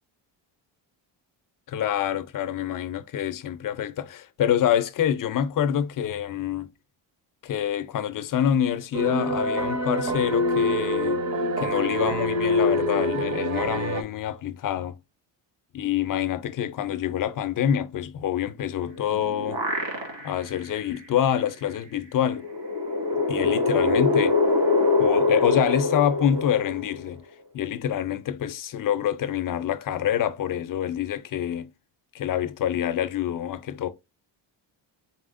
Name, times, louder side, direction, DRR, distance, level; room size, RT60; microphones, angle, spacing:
voice 1, 1.7-6.7 7.4-11.2 11.6-14.9 15.7-19.6 20.2-22.5 23.3-24.4 25.0-27.3 27.5-31.7 32.1-33.9, left 10 dB, 45° left, 0.6 m, -26 dB
sound 1, 8.9-14.0, left 1 dB, 40° right, 0.8 m, -25 dB
sound 2, 19.0-20.5 20.9-21.0 22.3-27.1, left 3 dB, 70° right, 2.1 m, -24 dB
4.2 x 4.1 x 2.5 m
cardioid pair, 155°, 45 cm